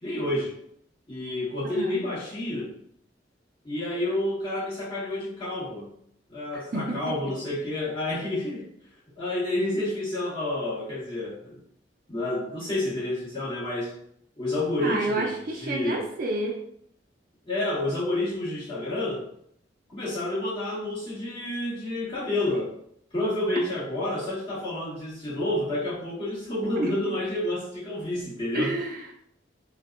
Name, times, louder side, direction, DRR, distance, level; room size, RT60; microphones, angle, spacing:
voice 1, 0.0-0.5 1.1-2.7 3.6-5.9 6.3-8.6 9.2-11.6 12.1-13.9 14.4-16.0 17.4-19.2 19.9-22.7 23.1-28.8, left 1 dB, 30° left, -11 dB, 1.4 m, -29 dB
voice 2, 1.6-2.1 6.7-7.2 14.8-16.6 26.8-26.9 28.5-29.1, right 2 dB, 50° right, 1 dB, 0.4 m, -29 dB
2.6 x 2.1 x 2.4 m, 0.69 s
head